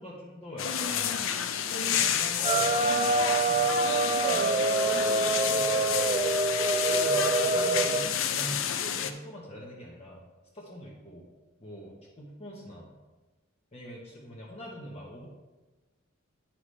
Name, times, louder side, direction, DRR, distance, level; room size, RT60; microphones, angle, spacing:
voice 1, 0.0-2.9 3.3-3.9 4.3-6.2 7.0-10.2 10.5-11.2 11.6-12.9 13.7-15.3, equal, 30° left, -4 dB, 1.1 m, -43 dB
sound 1, 0.6-9.1, left 8 dB, 70° left, 0.5 m, -30 dB
sound 2, 2.4-8.1, right 3 dB, 30° right, 0.4 m, -26 dB
9.6 x 5.8 x 3.2 m, 1.2 s
head